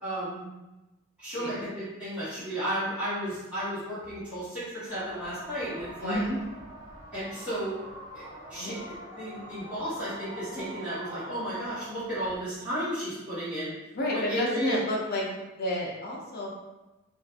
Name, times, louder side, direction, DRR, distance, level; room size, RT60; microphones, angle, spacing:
voice 1, 0.0-0.4 1.2-6.2 7.1-7.8 8.1-8.2 8.5-8.8 9.2-13.7 14.1-14.8, right 1 dB, 5° right, -15 dB, 1.2 m, -33 dB
sound 1, 4.9-12.4, right 1 dB, 25° right, 0.7 m, -44 dB
voice 2, 6.0-6.4 8.6-8.7 13.9-15.2 15.6-16.5, left 1 dB, 55° left, -3 dB, 0.6 m, -30 dB
2.6 x 2.4 x 2.4 m, 1.0 s
head